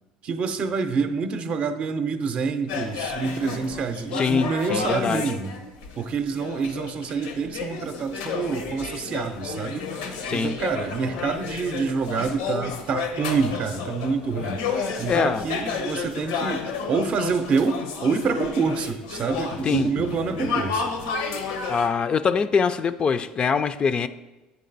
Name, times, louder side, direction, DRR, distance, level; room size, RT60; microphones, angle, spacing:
voice 1, 0.2-5.5 6.0-9.9 10.3-14.6 15.0-20.9, right 5 dB, 50° right, 0.6 m, -27 dB
sound 1, 2.7-21.9, left 5 dB, 90° left, 0.8 m, -31 dB
voice 2, 4.1-5.2 10.3-10.6 15.0-15.5 19.6-19.9 21.7-24.1, left 6 dB, 35° left, 0.3 m, -23 dB
8.4 x 3.8 x 4.0 m
supercardioid pair, 95°, 3 cm